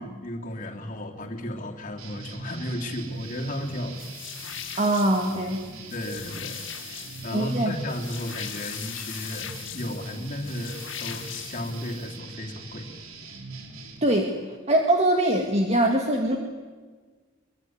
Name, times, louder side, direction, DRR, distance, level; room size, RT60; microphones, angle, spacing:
voice 1, 0.0-4.0 5.9-12.9, left 1 dB, 40° left, 1 dB, 3.2 m, -34 dB
sound 1, 2.0-14.0, right 4 dB, 90° right, 3.7 m, -42 dB
sound 2, 4.0-12.1, left 10 dB, 65° left, 2.3 m, -40 dB
voice 2, 4.8-5.7 7.3-7.7 14.0-14.3 14.7-16.4, right 1 dB, 30° right, 3 dB, 2.0 m, -22 dB
23.5 x 23.0 x 9.6 m, 1.5 s
head